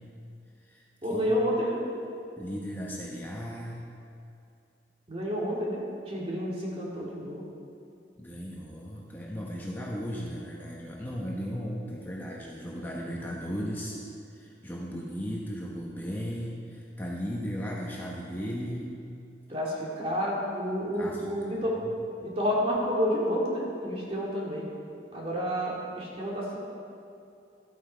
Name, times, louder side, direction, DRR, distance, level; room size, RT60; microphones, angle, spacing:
voice 1, 1.0-1.8 5.1-5.8 6.1-7.4 19.5-21.8 22.2-24.7 25.1-26.6, equal, 35° right, -4 dB, 2.3 m, -29 dB
voice 2, 2.4-3.8 8.2-14.0 14.3-18.8 21.0-21.2, equal, 10° left, -4 dB, 1.0 m, -36 dB
13.0 x 8.7 x 4.5 m, 2.6 s
head